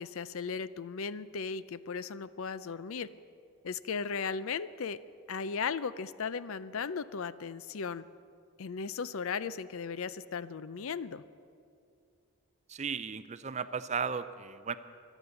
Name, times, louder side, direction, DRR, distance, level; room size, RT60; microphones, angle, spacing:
voice 1, 0.0-3.1 3.6-5.0 5.3-8.0 8.6-11.2, left 5 dB, 65° left, 16 dB, 0.5 m, -36 dB
voice 2, 12.7-14.8, right 6 dB, 30° right, 13 dB, 0.5 m, -35 dB
24.0 x 8.1 x 7.0 m, 2.4 s
head